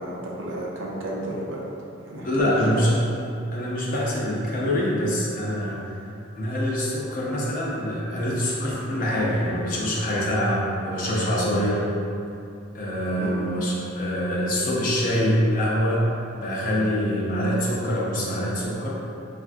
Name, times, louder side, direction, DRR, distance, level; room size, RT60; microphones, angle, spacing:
voice 1, 0.0-1.7 2.0-2.8 13.2-13.4, right 1 dB, 70° right, -3 dB, 0.5 m, -32 dB
voice 2, 2.2-2.9 3.5-6.0 6.3-11.9 12.7-18.9, equal, 45° left, -5 dB, 0.5 m, -25 dB
3.4 x 2.4 x 2.4 m, 2.6 s
head